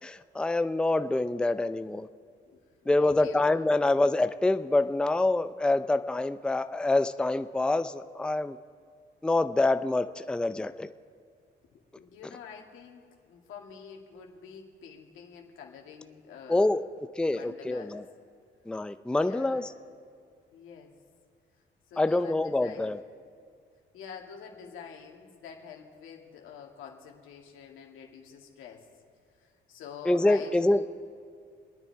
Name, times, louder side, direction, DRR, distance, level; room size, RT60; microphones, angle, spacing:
voice 1, 0.0-2.1 2.9-8.6 9.2-10.9 16.5-16.8 17.2-18.0 18.7-19.7 22.0-23.0 30.0-30.8, left 2 dB, 5° left, 10 dB, 0.5 m, -26 dB
voice 2, 2.5-3.4 12.0-16.9 17.3-18.0 19.1-19.7 20.5-20.9 21.9-23.0 23.9-28.9 29.4-30.8, left 7 dB, 90° left, 1 dB, 2.2 m, -46 dB
27.5 x 9.8 x 4.7 m, 2.2 s
cardioid pair, 90°, 20 cm